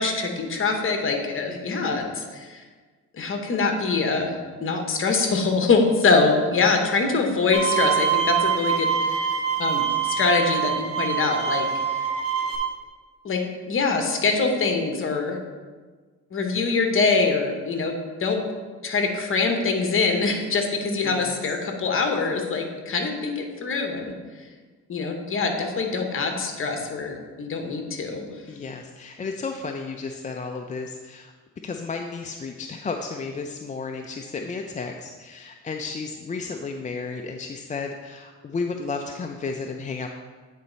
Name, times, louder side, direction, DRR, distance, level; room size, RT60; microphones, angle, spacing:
voice 1, 0.0-2.6 3.1-12.0 13.2-15.4 16.3-17.9 18.2-18.4 18.8-24.5 24.9-28.2, left 4 dB, 45° left, 4 dB, 1.2 m, -24 dB
voice 2, 1.5-2.0 21.0-21.4 28.5-31.3 31.6-40.1, left 4 dB, 25° left, 3 dB, 0.4 m, -33 dB
Bowed string instrument, 7.5-12.6, right 7 dB, 50° right, 1.3 m, -25 dB
9.3 x 4.2 x 4.0 m, 1.4 s
cardioid pair, 90°, 30 cm